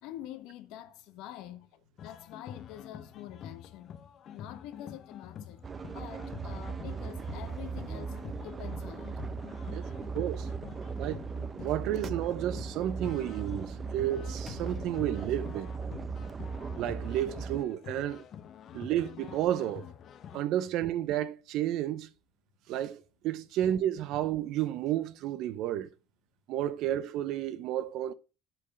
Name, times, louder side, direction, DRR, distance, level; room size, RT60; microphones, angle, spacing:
voice 1, 0.0-4.0 4.3-5.6 5.9-9.1 18.7-18.8, left 12 dB, 75° left, 1.3 m, -46 dB
sound 1, 2.0-20.4, left 8 dB, 50° left, 0.8 m, -47 dB
sound 2, 5.6-17.6, right 5 dB, 30° right, 0.7 m, -38 dB
voice 2, 10.1-10.5 11.0-11.2 11.6-15.7 16.8-18.2 18.7-19.9 20.3-22.1 22.7-25.9 26.5-28.1, right 12 dB, 65° right, 0.8 m, -31 dB
Slam, 10.5-11.6 13.7-13.9 14.4-15.6, left 6 dB, 30° left, 1.4 m, -51 dB
7.8 x 4.6 x 7.1 m
supercardioid pair, 110°, 0 cm